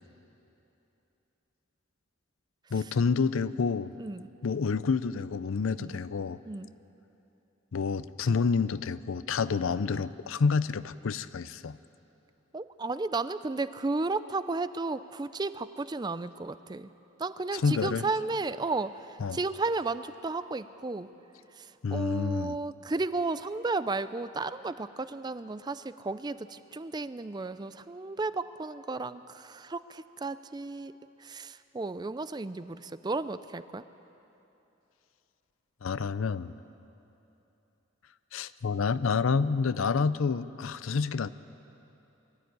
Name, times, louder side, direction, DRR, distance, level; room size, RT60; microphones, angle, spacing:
voice 1, 2.7-3.9 4.4-6.4 7.7-11.8 17.5-18.0 19.2-19.4 21.8-22.6 35.8-36.5 38.3-41.3, left 5 dB, 85° left, 15 dB, 0.5 m, -28 dB
voice 2, 12.5-16.9 17.2-21.1 21.6-30.9 31.2-33.8, right 3 dB, 20° right, 13 dB, 0.4 m, -33 dB
22.5 x 13.0 x 9.4 m, 3.0 s
head